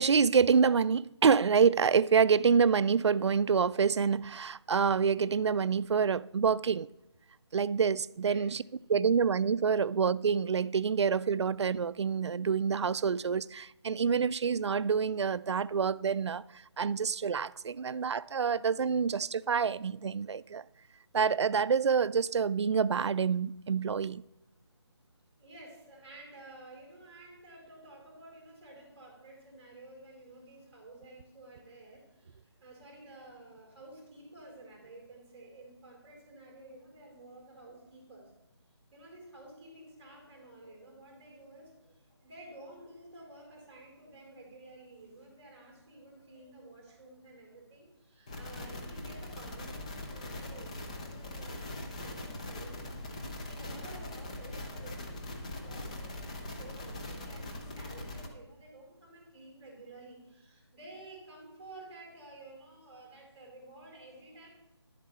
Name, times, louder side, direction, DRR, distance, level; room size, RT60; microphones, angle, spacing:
voice 1, 0.0-6.9 7.5-8.6 8.9-16.4 16.8-20.6 21.1-24.2, right 6 dB, 80° right, 0.4 m, -27 dB
voice 2, 25.4-38.3 38.9-64.5, right 2 dB, 25° right, 3.5 m, -52 dB
sound 1, 48.3-58.3, left 1 dB, 15° left, 0.6 m, -41 dB
11.0 x 7.4 x 4.3 m
figure-of-eight pair, 170°, 14 cm